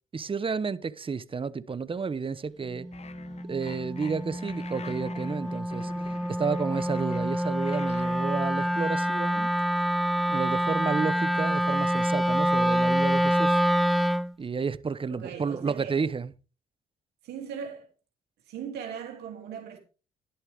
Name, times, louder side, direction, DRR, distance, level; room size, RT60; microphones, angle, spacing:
voice 1, 0.1-2.9 3.4-5.9 6.3-9.5 10.3-13.6 14.4-16.3, right 5 dB, 30° right, 0.9 m, -31 dB
Wind instrument woodwind instrument, 2.7-14.3, equal, ahead, 0.6 m, -26 dB
sound 1, 2.9-8.4, left 5 dB, 40° left, 1.0 m, -46 dB
voice 2, 15.1-16.1 17.2-17.9 18.5-19.8, right 7 dB, 80° right, 2.8 m, -39 dB
11.5 x 11.0 x 3.5 m
hypercardioid pair, 50°, 17 cm